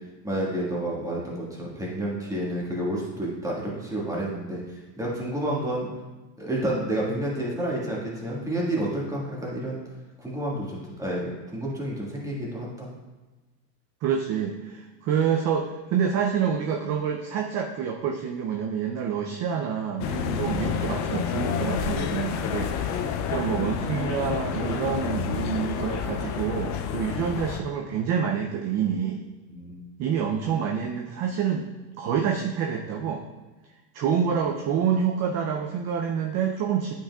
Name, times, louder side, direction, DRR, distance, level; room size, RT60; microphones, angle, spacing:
voice 1, 0.2-5.9 6.4-9.8 10.2-12.9 29.5-29.9, right 1 dB, 5° right, -5 dB, 1.7 m, -30 dB
voice 2, 14.0-29.2 30.0-31.7 32.0-33.2 33.9-36.9, right 7 dB, 35° right, 3 dB, 0.4 m, -27 dB
sound 1, 20.0-27.6, left 7 dB, 35° left, 0.4 m, -29 dB
8.6 x 5.8 x 2.3 m, 1.2 s
supercardioid pair, 125°, 50 cm